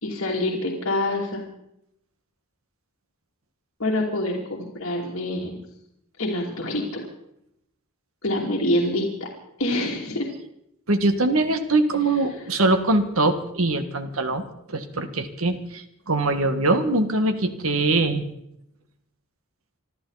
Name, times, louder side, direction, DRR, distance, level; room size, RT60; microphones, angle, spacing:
voice 1, 0.0-1.4 3.8-5.6 6.2-7.1 8.2-9.3 9.6-10.3, left 1 dB, 65° left, -6 dB, 2.9 m, -26 dB
voice 2, 10.9-14.4 14.7-18.3, right 2 dB, 85° right, 8 dB, 1.6 m, -22 dB
26.0 x 12.5 x 4.1 m, 0.77 s
head